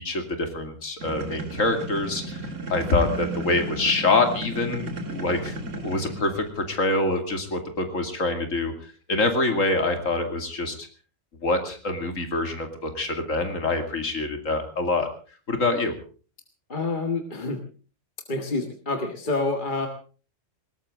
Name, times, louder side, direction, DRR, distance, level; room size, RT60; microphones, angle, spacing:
voice 1, 0.0-10.9 11.4-15.1 15.5-15.9, left 2 dB, 85° left, 6 dB, 2.9 m, -25 dB
sound 1, 1.0-6.6, right 1 dB, 70° right, 2.4 m, -34 dB
voice 2, 16.7-17.6 18.3-19.9, left 3 dB, 40° left, 5 dB, 1.9 m, -27 dB
20.5 x 18.0 x 3.8 m, 0.39 s
omnidirectional pair, 1.3 m